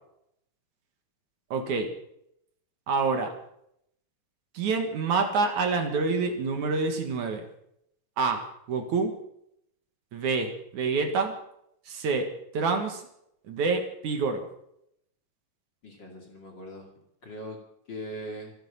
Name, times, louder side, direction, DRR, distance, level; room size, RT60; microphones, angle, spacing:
voice 1, 1.5-1.9 2.9-3.3 4.5-7.4 8.2-8.4 8.7-9.1 10.1-11.4 11.9-13.0 13.5-14.4, right 4 dB, 60° right, 5 dB, 3.0 m, -27 dB
voice 2, 15.8-16.9 17.2-17.6 17.9-18.5, equal, 35° left, 1 dB, 2.8 m, -40 dB
25.5 x 9.7 x 5.7 m, 0.75 s
omnidirectional pair, 4.0 m